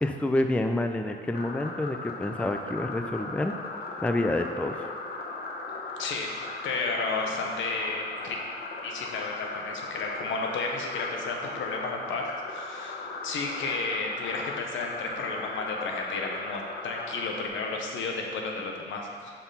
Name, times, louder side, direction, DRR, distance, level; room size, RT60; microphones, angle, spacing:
voice 1, 0.0-3.5 4.0-4.7, left 1 dB, 5° left, 6 dB, 0.4 m, -28 dB
sound 1, 1.3-17.5, left 3 dB, 50° left, 1.1 m, -38 dB
voice 2, 6.6-8.4 8.8-12.2 12.5-13.0 13.2-19.3, left 3 dB, 75° left, 1 dB, 1.0 m, -32 dB
5.7 x 4.4 x 5.5 m, 2.2 s
cardioid pair, 90°, 20 cm